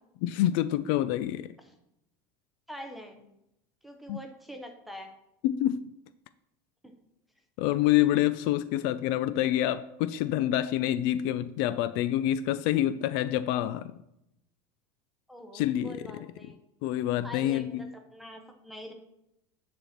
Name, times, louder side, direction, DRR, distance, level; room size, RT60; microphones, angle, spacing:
voice 1, 0.2-1.5 4.1-4.2 5.4-5.9 7.6-13.9 15.5-16.2 16.8-17.8, left 13 dB, 50° left, 0.4 m, -27 dB
voice 2, 2.7-3.3 3.8-5.1 6.8-7.0 15.3-16.6 17.2-18.9, equal, ahead, 0.8 m, -44 dB
10.0 x 4.3 x 7.1 m
cardioid pair, 170°, 11 cm